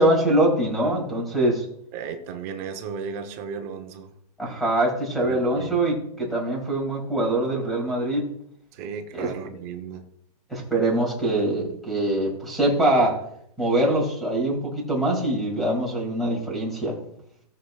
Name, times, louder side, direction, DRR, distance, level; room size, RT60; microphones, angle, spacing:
voice 1, 0.0-1.6 4.4-8.2 9.1-9.3 10.5-13.2 13.6-17.0, right 1 dB, ahead, -1 dB, 2.3 m, -23 dB
voice 2, 1.9-4.1 5.2-5.8 8.7-10.0, right 6 dB, 25° right, 6 dB, 0.8 m, -35 dB
17.5 x 6.5 x 2.3 m, 0.71 s
hypercardioid pair, 170°, 21 cm